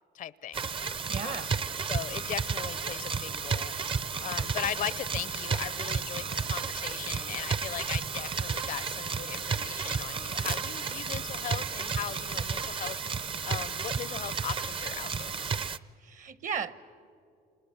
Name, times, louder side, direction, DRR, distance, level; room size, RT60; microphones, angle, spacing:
voice 1, 0.1-0.7 1.2-1.5 1.9-3.8 4.2-15.3 15.7-15.8, left 10 dB, 50° left, 20 dB, 0.5 m, -38 dB
sound 1, 0.5-15.8, right 5 dB, 30° right, 0.6 m, -32 dB
voice 2, 1.1-1.5 16.0-16.7, right 6 dB, 50° right, 16 dB, 1.0 m, -35 dB
29.5 x 26.5 x 7.0 m, 2.6 s
cardioid pair, 110°, 17 cm